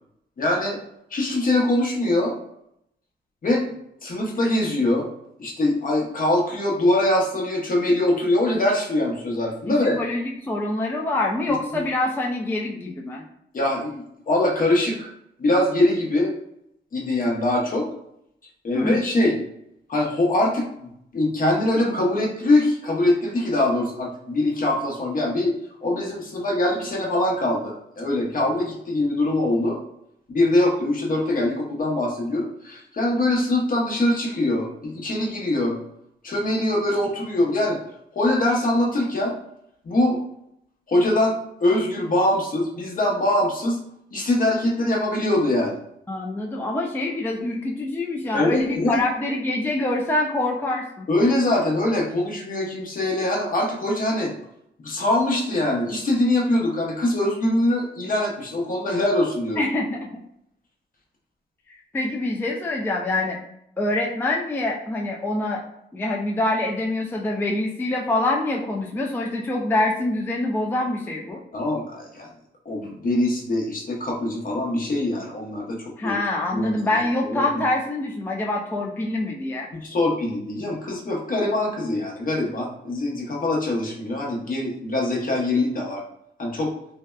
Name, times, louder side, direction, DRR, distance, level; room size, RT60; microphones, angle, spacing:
voice 1, 0.4-0.8 1.1-2.4 3.4-3.7 4.0-5.1 5.4-10.0 11.5-11.8 13.5-15.1 15.4-16.3 16.9-17.9 18.6-19.4 19.9-25.5 25.8-29.8 30.3-35.8 36.2-37.8 38.1-39.3 39.8-40.2 40.9-43.8 44.1-45.8 48.3-49.0 51.1-54.3 54.8-59.6 71.5-72.3 72.6-75.8 76.0-76.2 76.5-77.6 79.7-86.0 86.4-86.7, left 1 dB, 45° left, -1 dB, 0.8 m, -23 dB
voice 2, 9.9-13.2 18.7-19.0 46.1-51.1 59.6-60.0 61.7-63.4 63.8-65.6 65.9-71.4 76.0-79.7, left 2 dB, 10° left, -1 dB, 0.3 m, -25 dB
2.7 x 2.1 x 2.2 m, 0.76 s
supercardioid pair, 60°, 20 cm